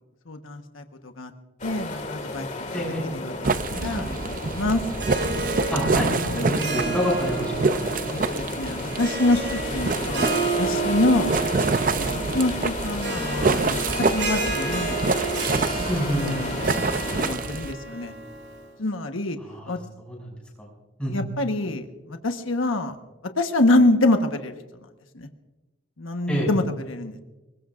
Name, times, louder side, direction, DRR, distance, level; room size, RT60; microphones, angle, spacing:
voice 1, 0.3-1.3 1.6-2.7 3.0-4.8 6.3-6.6 8.1-11.4 11.9-13.8 14.1-15.0 15.9-16.7 17.0-18.1 18.8-19.4 19.7-19.8 21.1-23.0 23.4-24.5 25.1-25.3 26.0-27.2, left 2 dB, 85° left, 5 dB, 1.2 m, -26 dB
sound 1, 1.6-17.3, left 2 dB, 35° left, 2.1 m, -33 dB
voice 2, 2.7-3.0 5.7-7.8 15.9-16.3 19.4-19.7 20.1-20.2 20.6-20.7 21.0-21.1 26.3-26.5, equal, 5° left, -3 dB, 6.8 m, -27 dB
sound 2, 3.4-17.7, right 3 dB, 40° right, 0.6 m, -27 dB
Harp, 4.9-18.6, right 4 dB, 65° right, 5.4 m, -31 dB
25.0 x 21.5 x 2.5 m, 1.1 s
head